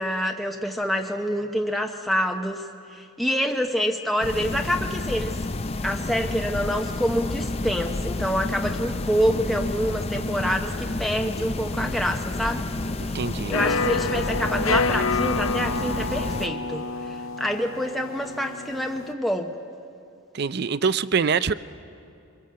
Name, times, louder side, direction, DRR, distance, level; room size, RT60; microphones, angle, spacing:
voice 1, 0.0-2.6 2.9-5.4 5.8-12.6 13.5-19.5, equal, ahead, 2 dB, 0.8 m, -27 dB
sound 1, 4.2-16.5, left 2 dB, 30° left, 0.6 m, -30 dB
voice 2, 13.1-13.5 20.3-21.5, right 5 dB, 50° right, 16 dB, 0.5 m, -24 dB
sound 2, 13.5-19.1, left 4 dB, 80° left, 0.8 m, -28 dB
24.0 x 21.5 x 7.6 m, 2.6 s
head